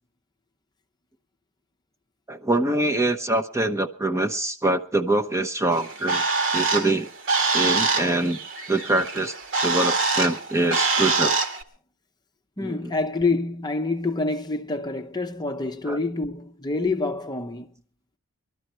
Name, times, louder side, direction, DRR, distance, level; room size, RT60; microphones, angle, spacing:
voice 1, 2.3-6.2 6.5-7.1 7.5-8.4 8.7-9.3 9.6-11.3 12.6-12.8 15.9-16.0, right 2 dB, 15° right, 0.8 m, -24 dB
Bird, 5.7-11.6, right 4 dB, 60° right, 1.9 m, -24 dB
voice 2, 12.6-17.7, left 3 dB, 20° left, 0.8 m, -27 dB
20.5 x 12.5 x 4.5 m
head